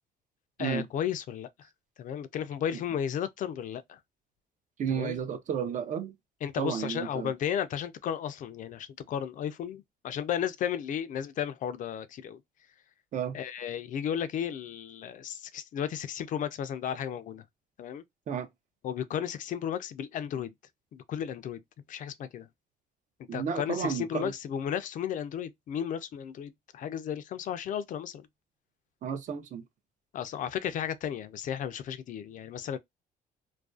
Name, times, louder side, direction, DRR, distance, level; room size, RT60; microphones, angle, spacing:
voice 1, 0.6-1.5 2.0-4.0 4.9-5.2 6.4-12.4 13.3-17.4 17.8-18.0 18.8-20.5 20.9-21.6 21.9-22.5 23.3-28.3 30.1-32.8, left 9 dB, 50° left, 0.4 m, -34 dB
voice 2, 4.8-6.1 6.6-7.3 13.1-13.3 18.3-18.5 23.3-24.3 29.0-29.6, right 7 dB, 45° right, 0.5 m, -32 dB
2.4 x 2.2 x 2.3 m
cardioid pair, 110°, 17 cm